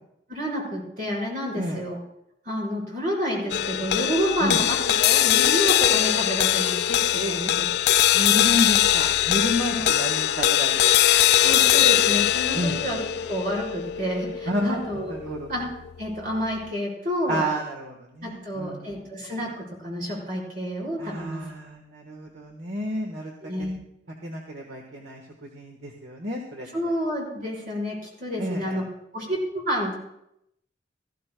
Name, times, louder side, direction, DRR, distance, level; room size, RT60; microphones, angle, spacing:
voice 1, 0.3-2.0 2.4-7.0 7.3-7.7 9.7-9.9 11.4-13.0 13.3-15.1 15.5-15.7 16.0-17.4 18.2-21.4 23.4-23.8 26.7-28.8 29.1-30.0, equal, 45° right, -4 dB, 5.0 m, -29 dB
sound 1, 3.5-16.0, left 12 dB, 60° left, 0.3 m, -21 dB
voice 2, 7.1-7.5 8.1-10.8 11.5-11.6 12.5-12.8 14.5-14.8 15.1-15.5 17.3-18.9 21.0-23.3 23.6-23.7 24.2-26.7 28.4-28.8, equal, 70° right, 0 dB, 1.4 m, -30 dB
19.0 x 14.0 x 2.3 m, 0.78 s
head